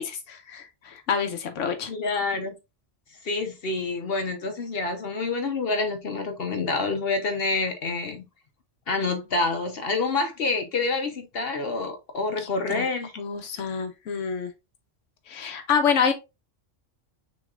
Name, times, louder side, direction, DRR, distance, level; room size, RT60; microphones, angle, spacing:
voice 1, 0.0-1.9 12.7-12.9 13.2-14.5 15.3-16.1, left 6 dB, 80° left, 1.0 m, -27 dB
voice 2, 1.9-2.5 3.2-8.2 8.9-13.1, left 3 dB, 55° left, 0.9 m, -27 dB
6.1 x 3.2 x 2.4 m
omnidirectional pair, 1.3 m